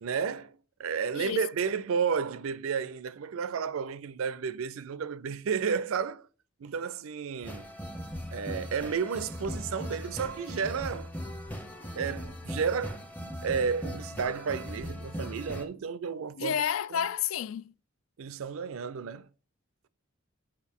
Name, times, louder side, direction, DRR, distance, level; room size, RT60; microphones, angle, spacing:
voice 1, 0.0-6.2 6.6-7.7 8.3-11.1 11.9-16.6 16.9-17.1 18.2-19.3, right 6 dB, 75° right, 0.4 m, -32 dB
voice 2, 1.1-1.5 16.4-17.7, left 9 dB, 75° left, 0.3 m, -30 dB
sound 1, 7.4-15.6, equal, 10° left, 0.6 m, -39 dB
8.1 x 4.9 x 3.6 m
head